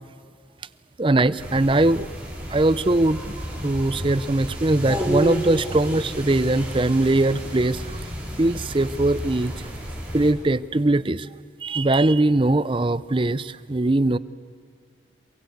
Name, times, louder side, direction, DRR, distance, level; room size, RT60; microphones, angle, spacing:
voice 1, 1.0-2.1 2.5-3.2 3.6-7.8 8.4-9.5 10.1-11.3 11.6-14.2, right 2 dB, 30° right, 17 dB, 0.6 m, -21 dB
sound 1, 1.4-10.3, right 1 dB, 10° right, 5.2 m, -31 dB
27.5 x 23.5 x 8.0 m, 2.1 s
head